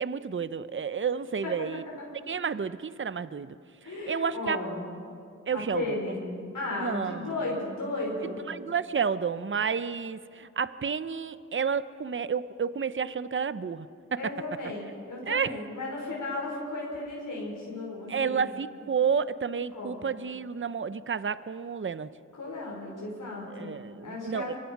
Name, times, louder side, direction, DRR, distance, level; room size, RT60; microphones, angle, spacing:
voice 1, 0.0-1.8 2.3-3.6 3.8-4.6 5.5-6.0 6.8-7.3 8.5-13.9 14.1-14.2 15.3-15.5 18.1-22.1 23.5-24.5, right 6 dB, 40° right, 14 dB, 0.7 m, -30 dB
voice 2, 3.8-4.8 5.5-6.2 6.5-8.4 14.2-18.4 19.7-20.0 22.3-23.7 24.0-24.6, left 2 dB, 80° left, -3 dB, 5.6 m, -35 dB
24.5 x 24.0 x 6.0 m, 2.4 s
wide cardioid pair, 60°, 31 cm